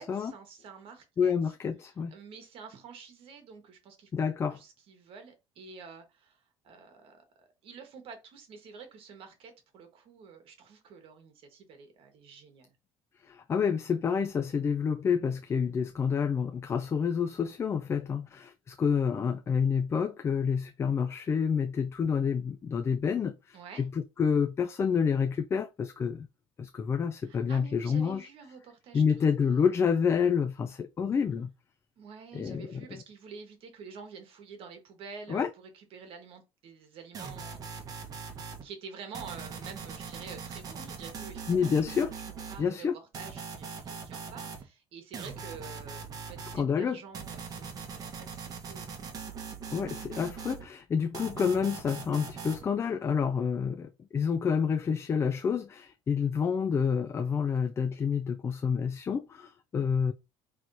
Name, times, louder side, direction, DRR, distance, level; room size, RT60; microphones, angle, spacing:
voice 1, 0.0-1.5 2.1-4.1 4.5-12.7 23.5-23.9 27.2-29.8 32.0-41.8 42.3-49.4, right 5 dB, 60° right, 1.3 m, -49 dB
voice 2, 1.2-2.1 4.1-4.6 13.3-26.3 26.6-28.3 28.9-31.5 32.3-32.9 35.3-35.5 41.5-42.1 42.6-43.0 46.5-47.0 49.7-60.1, left 6 dB, 25° left, 0.3 m, -28 dB
sound 1, 37.1-38.6 39.1-42.6 43.1-44.6 45.1-46.6 47.1-50.6 51.1-52.6, right 5 dB, 35° right, 1.1 m, -41 dB
5.7 x 3.2 x 2.6 m
cardioid pair, 135°, 11 cm